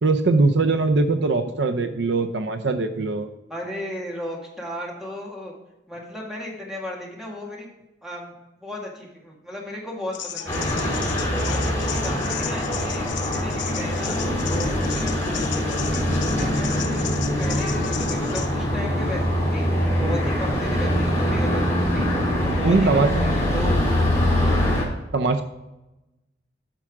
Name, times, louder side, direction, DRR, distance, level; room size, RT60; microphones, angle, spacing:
voice 1, 0.0-3.3 22.6-23.1 25.1-25.4, right 3 dB, 65° right, 7 dB, 0.6 m, -21 dB
voice 2, 3.5-5.5 5.9-7.7 8.0-11.0 11.3-14.2 14.5-17.1 17.4-19.6 20.0-22.1 22.4-24.0 24.4-24.7, left 1 dB, 5° right, -3 dB, 2.0 m, -35 dB
sound 1, 10.1-18.5, left 8 dB, 75° left, 0.9 m, -35 dB
sound 2, 10.5-24.8, equal, 15° left, 2.8 m, -23 dB
9.1 x 6.0 x 3.6 m, 0.99 s
head